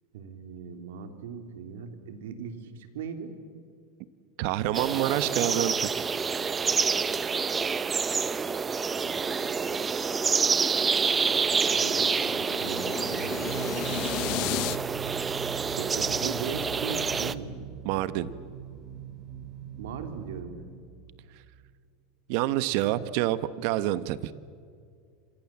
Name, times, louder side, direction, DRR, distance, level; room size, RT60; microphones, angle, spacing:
voice 1, 0.1-3.3 9.0-9.7 11.2-13.8 14.2-14.8 15.8-17.7 19.8-20.7, right 6 dB, 85° right, 7 dB, 3.0 m, -39 dB
voice 2, 4.4-6.1 17.8-18.3 22.3-24.3, right 14 dB, 65° right, 14 dB, 1.3 m, -27 dB
sound 1, 4.7-17.3, right 5 dB, 20° right, 0.9 m, -28 dB
sound 2, 10.5-14.8, left 21 dB, 55° left, 0.7 m, -35 dB
sound 3, 13.0-21.7, right 9 dB, 35° right, 3.2 m, -41 dB
29.5 x 26.5 x 7.5 m, 2.2 s
supercardioid pair, 130°, 0 cm